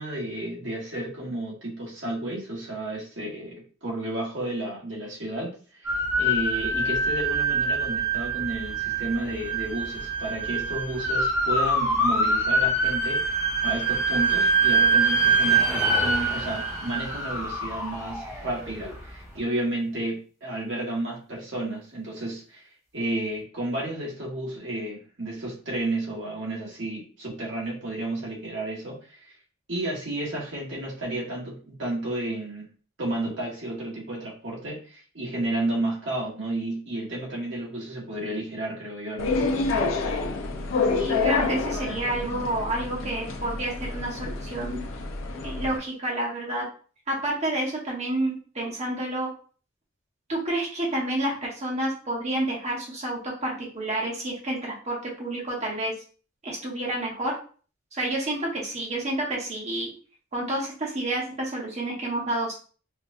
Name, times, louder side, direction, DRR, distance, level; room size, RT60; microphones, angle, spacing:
voice 1, 0.0-3.5 3.8-22.7 22.9-29.3 29.7-32.7 33.0-39.4, right 1 dB, 65° right, -4 dB, 1.5 m, -32 dB
sound 1, 5.9-18.9, right 3 dB, 15° right, 0.9 m, -24 dB
sound 2, 39.2-45.8, left 3 dB, 90° left, 0.6 m, -28 dB
voice 2, 40.9-44.8 45.4-46.6 47.1-49.3 50.3-55.9 56.4-57.3 57.9-59.9 60.3-62.6, right 1 dB, 35° right, -3 dB, 1.2 m, -29 dB
4.4 x 2.3 x 2.6 m, 0.40 s
head